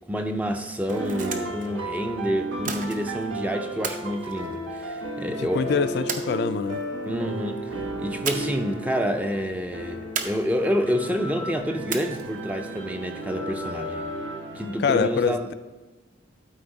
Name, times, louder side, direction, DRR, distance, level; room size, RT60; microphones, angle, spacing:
voice 1, 0.1-5.8 7.0-14.0 14.5-15.5, equal, 10° right, 0.4 m, -28 dB
sound 1, 0.8-1.7 2.6-3.3 3.8-5.1 6.1-6.8 8.2-8.7 9.0-9.1 10.2-10.9 11.9-12.5, right 5 dB, 40° right, 0.7 m, -34 dB
sound 2, 0.9-14.8, right 1 dB, 75° right, 1.1 m, -34 dB
voice 2, 5.4-6.8 14.8-15.5, left 5 dB, 55° left, 0.3 m, -25 dB
12.0 x 4.5 x 4.0 m
head